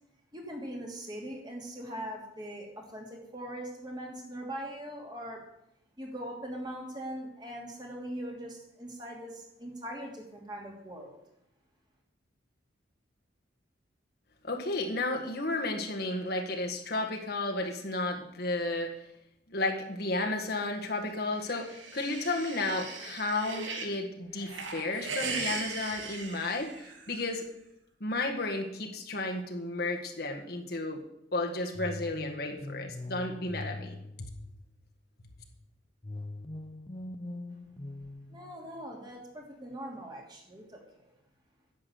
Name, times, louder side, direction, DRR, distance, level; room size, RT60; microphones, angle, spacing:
voice 1, 0.3-5.4 6.0-11.2 38.3-40.8, right 1 dB, 20° right, 0 dB, 2.7 m, -41 dB
voice 2, 14.4-18.9 19.5-27.4 28.0-31.0 31.3-34.3, left 2 dB, 55° left, 2 dB, 1.7 m, -33 dB
sound 1, 21.3-24.0 24.4-27.2, right 4 dB, 80° right, 2.4 m, -39 dB
sound 2, 31.7-34.9 36.0-39.0, left 2 dB, 25° left, 0.6 m, -42 dB
10.5 x 7.5 x 9.5 m, 0.82 s
head